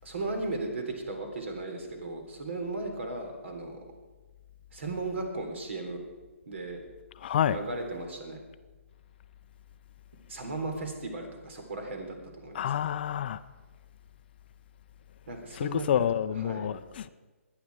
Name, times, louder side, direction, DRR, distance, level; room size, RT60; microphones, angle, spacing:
voice 1, 0.0-3.8 4.7-6.0 6.5-6.8 7.5-8.4 10.3-12.7 15.3-16.1 16.4-16.7, right 2 dB, 60° right, 5 dB, 3.7 m, -36 dB
voice 2, 7.2-7.6 12.5-13.4 15.5-17.1, left 9 dB, 45° left, 13 dB, 0.6 m, -28 dB
23.5 x 9.7 x 4.8 m, 1.3 s
figure-of-eight pair, 140°, 7 cm